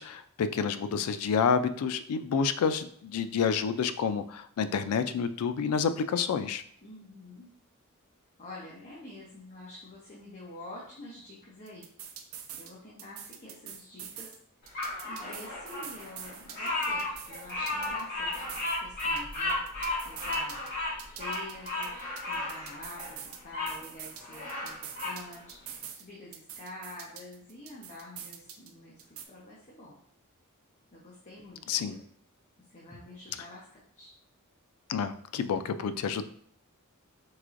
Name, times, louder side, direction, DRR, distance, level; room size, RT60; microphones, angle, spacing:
voice 1, 0.0-6.6 31.7-31.9 34.9-36.3, left 6 dB, 75° left, 11 dB, 0.3 m, -29 dB
voice 2, 6.8-7.5 8.4-11.9 12.3-14.3 15.0-20.6 21.2-29.9 30.9-32.0 32.6-33.6 34.0-34.1, left 1 dB, 35° left, -5 dB, 0.8 m, -47 dB
sound 1, 11.7-12.7 13.0-14.4 14.7-18.0 18.3-20.7 21.0-23.4 23.7-26.0 26.3-28.7 29.0-29.2, right 9 dB, 70° right, 0.5 m, -44 dB
Bird vocalization bird call bird song, 14.7-23.7 24.2-25.2, left 2 dB, 50° left, 1.5 m, -34 dB
4.7 x 3.7 x 2.5 m, 0.62 s
head